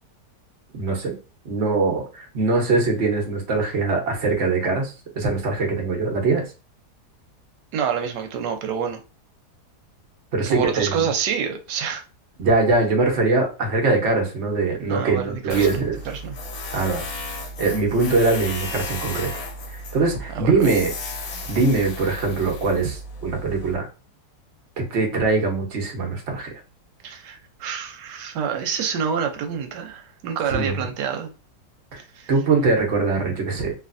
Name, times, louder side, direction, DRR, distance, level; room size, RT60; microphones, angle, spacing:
voice 1, 0.7-1.1 1.4-6.5 10.3-11.0 12.4-16.0 16.7-17.0 17.6-19.3 19.7-20.9 21.5-23.9 24.8-26.5 30.5-30.9 31.9-32.0 32.3-33.7, right 3 dB, 45° right, 1.1 m, -22 dB
voice 2, 7.7-9.0 10.4-12.0 14.9-16.4 20.3-20.7 27.0-31.3 32.1-32.3, right 7 dB, 85° right, 1.2 m, -27 dB
Tools, 15.5-23.7, left 2 dB, 65° left, 1.1 m, -34 dB
3.2 x 2.6 x 2.5 m
omnidirectional pair, 1.8 m